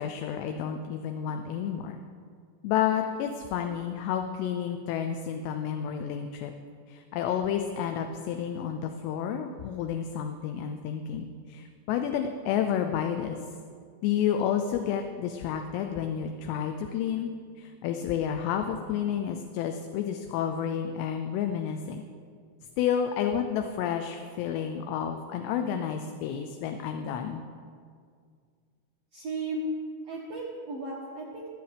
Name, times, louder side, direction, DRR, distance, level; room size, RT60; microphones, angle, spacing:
voice 1, 0.0-2.0 2.6-6.5 6.9-13.4 14.0-17.3 17.6-22.0 22.8-27.4, left 8 dB, 80° left, 6 dB, 2.7 m, -30 dB
voice 2, 29.1-29.7 30.1-31.5, right 2 dB, 90° right, -3 dB, 1.4 m, -35 dB
22.5 x 7.9 x 3.4 m, 2.1 s
omnidirectional pair, 5.0 m